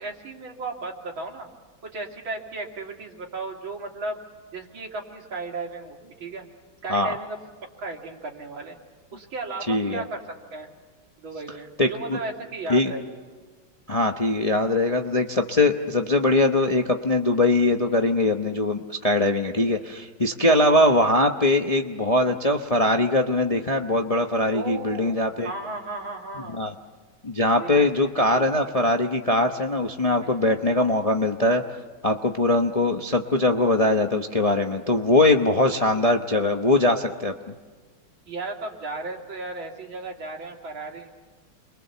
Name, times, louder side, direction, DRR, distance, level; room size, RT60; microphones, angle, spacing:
voice 1, 0.0-1.5 1.8-4.2 4.5-6.4 6.8-7.4 7.8-8.8 9.1-10.2 10.5-10.7 11.2-13.0 20.5-20.8 24.5-26.6 27.6-28.4 30.2-30.4 38.3-41.1, right 3 dB, 90° right, 0 dB, 3.6 m, -35 dB
voice 2, 9.7-10.0 11.8-12.2 12.7-12.9 13.9-25.5 26.5-26.7 27.2-31.6 32.0-37.5, left 2 dB, 35° left, 4 dB, 0.6 m, -21 dB
29.5 x 23.0 x 6.9 m, 1.4 s
omnidirectional pair, 2.1 m